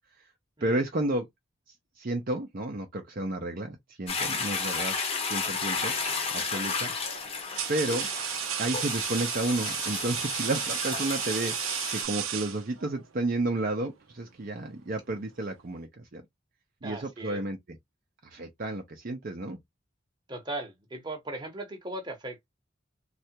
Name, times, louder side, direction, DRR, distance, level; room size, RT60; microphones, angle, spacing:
voice 1, 0.6-1.3 2.0-4.9 5.3-5.9 6.3-6.9 7.7-8.1 8.6-11.6 11.9-16.2 16.8-17.8 18.3-19.6, right 2 dB, 45° right, 0.6 m, -31 dB
Toilet flush, 4.1-12.0, left 5 dB, 30° left, 0.8 m, -33 dB
sound 1, 5.9-6.2 7.0-13.0, right 10 dB, 90° right, 0.6 m, -33 dB
voice 2, 16.8-17.4 20.3-22.5, right 2 dB, 20° right, 0.9 m, -38 dB
3.2 x 2.4 x 2.8 m
head